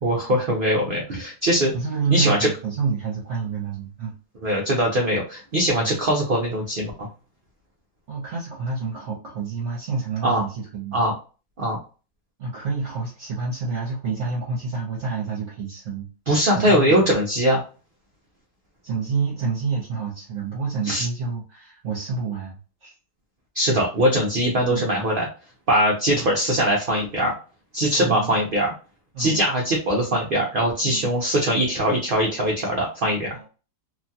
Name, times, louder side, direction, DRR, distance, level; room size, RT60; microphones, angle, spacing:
voice 1, 0.0-1.7 2.1-2.5 4.4-7.1 10.2-10.4 10.9-11.1 11.6-11.8 16.3-17.6 20.8-21.1 23.5-25.3 25.7-27.3 27.7-28.7 29.2-33.4, equal, 70° right, -1 dB, 0.5 m, -21 dB
voice 2, 1.7-4.1 5.8-6.0 8.1-11.0 12.4-16.1 16.5-17.0 18.8-22.9 24.7-24.9 26.1-26.3 28.0-28.4 29.1-29.4 30.9-31.1 33.3-33.4, right 4 dB, 55° right, -4 dB, 1.0 m, -28 dB
3.0 x 2.2 x 2.6 m, 0.35 s
omnidirectional pair, 1.7 m